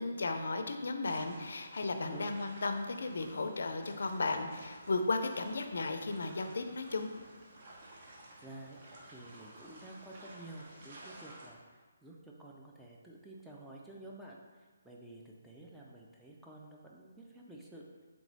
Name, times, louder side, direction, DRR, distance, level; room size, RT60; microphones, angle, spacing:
voice 1, 0.0-7.1, left 3 dB, 70° left, 6 dB, 0.4 m, -35 dB
sound 1, 1.0-11.5, right 1 dB, 45° right, 0.7 m, -54 dB
voice 2, 8.4-8.8 9.1-17.8, right 1 dB, 5° right, -4 dB, 0.4 m, -51 dB
3.4 x 3.0 x 4.0 m, 1.4 s
hypercardioid pair, 160°, 0 cm